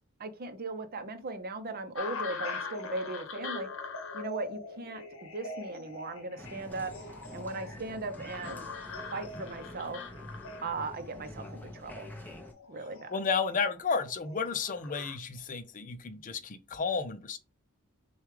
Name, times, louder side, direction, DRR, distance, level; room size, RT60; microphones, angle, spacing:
voice 1, 0.2-3.7 4.1-6.9 7.3-8.7 9.1-10.0 10.6-12.1 12.7-13.2, right 3 dB, 45° right, 0.7 m, -38 dB
sound 1, 2.0-15.2, left 4 dB, 60° left, 1.1 m, -42 dB
Applause, 6.4-12.5, left 1 dB, 10° left, 0.8 m, -46 dB
voice 2, 13.1-17.4, left 5 dB, 35° left, 0.6 m, -32 dB
6.4 x 2.4 x 3.3 m
head